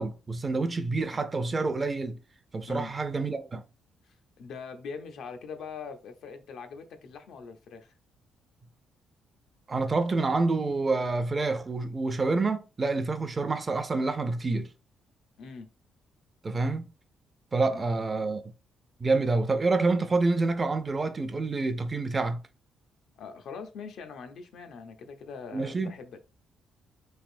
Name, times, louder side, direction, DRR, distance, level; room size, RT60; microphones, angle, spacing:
voice 1, 0.0-2.2 2.5-3.6 9.7-14.7 16.4-16.8 17.5-18.4 19.0-22.4 25.5-25.9, right 3 dB, 30° right, 0.4 m, -27 dB
voice 2, 4.0-7.9 15.4-15.7 17.6-17.9 23.2-26.2, left 5 dB, 75° left, 0.5 m, -42 dB
3.3 x 2.6 x 2.5 m
cardioid pair, 90°, 0 cm